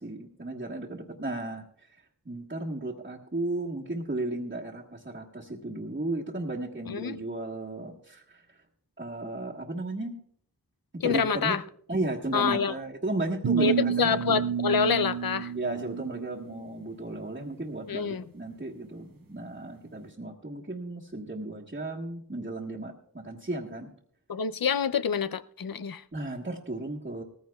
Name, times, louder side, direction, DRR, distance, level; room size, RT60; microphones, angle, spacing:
voice 1, 0.0-1.6 1.9-8.6 9.0-10.2 11.0-11.6 11.9-14.4 15.5-23.9 26.1-27.2, right 2 dB, 30° right, 1.4 m, -34 dB
voice 2, 6.9-7.2 11.0-11.6 12.3-12.7 13.6-15.5 17.9-18.2 24.3-26.0, left 6 dB, 65° left, 0.5 m, -27 dB
sound 1, 13.4-16.6, right 7 dB, 65° right, 0.7 m, -29 dB
18.5 x 15.0 x 2.3 m
wide cardioid pair, 50°, 37 cm